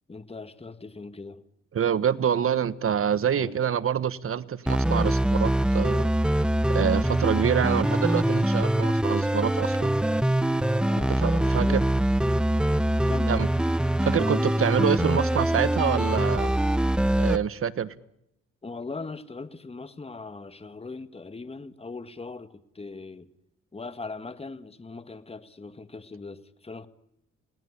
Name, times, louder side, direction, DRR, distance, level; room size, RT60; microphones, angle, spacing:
voice 1, 0.1-1.5 3.3-3.6 10.8-11.8 13.0-13.5 18.6-23.3 23.7-26.9, left 3 dB, 20° left, 1.7 m, -40 dB
voice 2, 1.7-6.1 6.7-9.9 11.2-11.8 13.3-13.5 14.0-16.5 17.2-17.9, right 8 dB, 45° right, 1.3 m, -26 dB
sound 1, 4.7-17.4, right 1 dB, 5° right, 0.9 m, -23 dB
29.0 x 18.5 x 9.9 m
cardioid pair, 90°, 30 cm